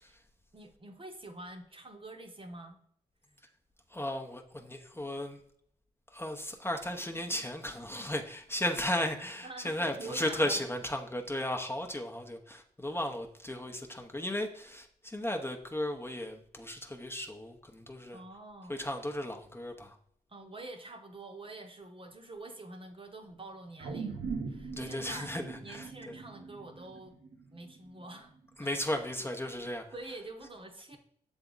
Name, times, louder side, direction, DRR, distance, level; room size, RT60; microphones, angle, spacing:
voice 1, 0.5-2.8 3.3-3.4 8.0-8.1 9.4-10.6 18.1-18.7 20.3-25.3 25.6-27.1 27.5-28.3 28.6-29.0 29.9-31.0, right 2 dB, 35° right, 4 dB, 1.0 m, -46 dB
voice 2, 3.9-5.4 6.1-18.2 18.7-20.0 24.7-26.1 28.6-29.8, left 1 dB, 15° left, 3 dB, 0.8 m, -35 dB
sound 1, 23.8-28.3 28.7-28.8, right 4 dB, 80° right, 1.0 m, -41 dB
6.8 x 3.5 x 3.9 m, 0.65 s
supercardioid pair, 50°, 16 cm